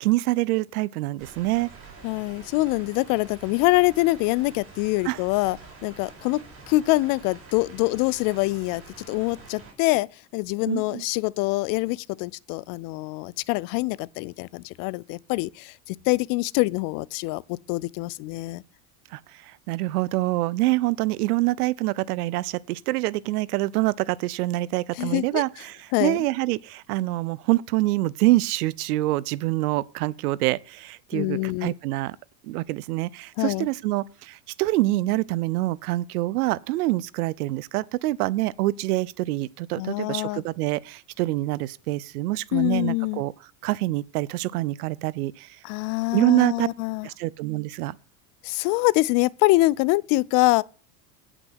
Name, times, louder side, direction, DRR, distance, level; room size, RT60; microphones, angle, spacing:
voice 1, 0.0-1.7 5.0-5.2 10.7-11.0 19.1-19.2 19.7-32.2 32.4-43.3 43.6-45.5 46.1-46.7 47.0-47.9, right 18 dB, 85° right, 0.7 m, -25 dB
sound 1, 1.2-9.7, right 4 dB, 30° right, 4.8 m, -46 dB
voice 2, 2.0-5.6 5.8-6.4 6.7-8.8 9.1-10.1 10.3-18.6 25.0-25.4 25.9-26.2 31.1-31.7 33.4-33.7 39.8-40.4 42.5-43.2 45.6-47.1 48.4-50.6, left 21 dB, 50° left, 0.5 m, -24 dB
9.1 x 6.1 x 7.9 m
supercardioid pair, 125°, 44 cm